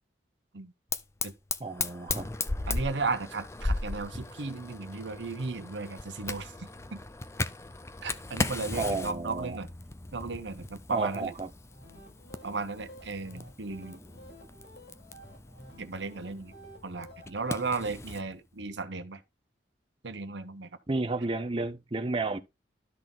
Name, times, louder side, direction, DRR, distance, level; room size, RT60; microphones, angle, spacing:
Fire, 0.9-18.2, left 3 dB, 15° left, 0.5 m, -37 dB
voice 1, 1.6-2.3 8.7-9.6 10.9-11.5 17.8-17.9 20.9-22.4, right 3 dB, 30° right, 0.7 m, -32 dB
voice 2, 2.7-7.0 8.0-9.7 10.1-11.3 12.4-14.0 15.8-16.5 16.8-19.2 20.0-20.7, right 3 dB, 70° right, 0.9 m, -35 dB
sound 1, 11.6-17.7, equal, 70° left, 6.0 m, -52 dB
12.5 x 4.1 x 3.7 m
head